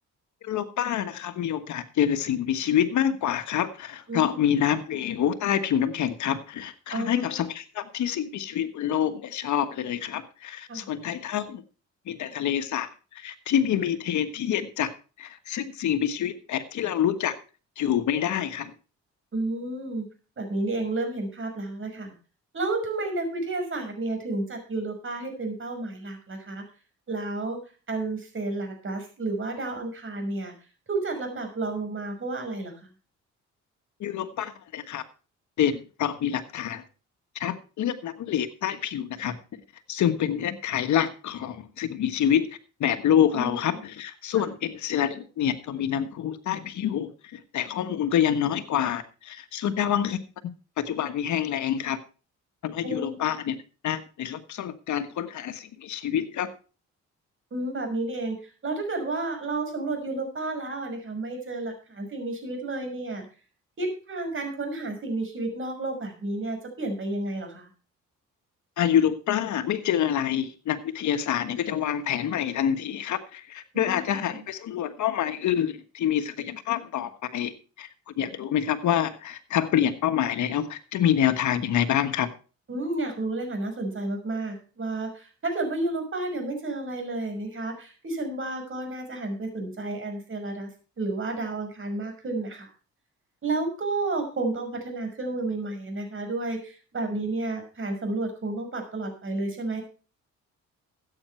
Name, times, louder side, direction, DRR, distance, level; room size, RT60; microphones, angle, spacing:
voice 1, 0.4-11.6 12.1-14.9 15.2-17.4 17.8-18.7 34.0-35.0 35.6-36.8 37.3-39.4 39.9-42.5 42.8-50.2 50.8-52.0 52.6-53.6 53.8-56.5 68.8-77.5 77.8-77.9 78.2-82.3, left 10 dB, 70° left, 10 dB, 1.5 m, -27 dB
voice 2, 4.1-4.5 6.9-7.4 10.7-10.9 19.3-20.1 20.4-22.1 22.5-26.6 27.1-27.6 27.9-30.5 30.9-32.9 43.3-43.7 44.3-44.5 52.8-53.2 57.5-63.3 63.8-67.7 73.7-74.4 82.7-90.7 91.0-92.7 93.4-99.8, right 2 dB, 40° right, 5 dB, 5.8 m, -31 dB
14.0 x 8.9 x 4.5 m, 0.36 s
cardioid pair, 90°, 30 cm